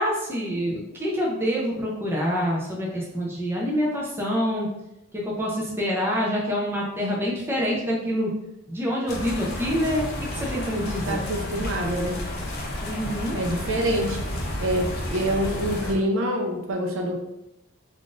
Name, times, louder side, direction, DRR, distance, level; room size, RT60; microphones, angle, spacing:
voice 1, 0.0-4.7 5.1-8.3 8.7-11.2 12.8-13.4, equal, 10° right, -4 dB, 0.5 m, -26 dB
sound 1, 9.1-15.9, left 1 dB, 45° left, 0.6 m, -31 dB
voice 2, 10.7-12.2 13.3-17.1, equal, 60° right, 1 dB, 0.5 m, -26 dB
3.5 x 2.5 x 2.5 m, 0.90 s
head